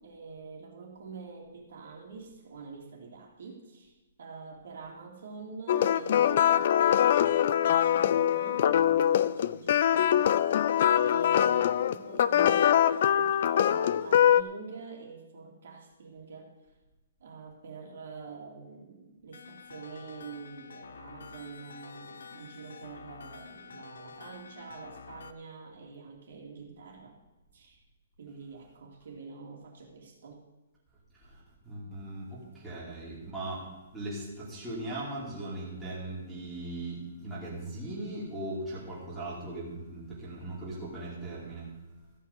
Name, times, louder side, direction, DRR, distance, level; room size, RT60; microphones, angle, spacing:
voice 1, 0.0-10.3 10.9-16.5 17.2-27.2 27.5-27.8 28.2-30.4, right 4 dB, 55° right, 0 dB, 2.6 m, -46 dB
sound 1, 5.7-14.4, left 10 dB, 40° left, 0.3 m, -23 dB
sound 2, 19.3-25.3, left 5 dB, 70° left, 0.8 m, -48 dB
voice 2, 31.2-41.7, right 2 dB, 5° right, -9 dB, 2.6 m, -39 dB
14.0 x 5.6 x 8.5 m, 1.1 s
hypercardioid pair, 180°, 0 cm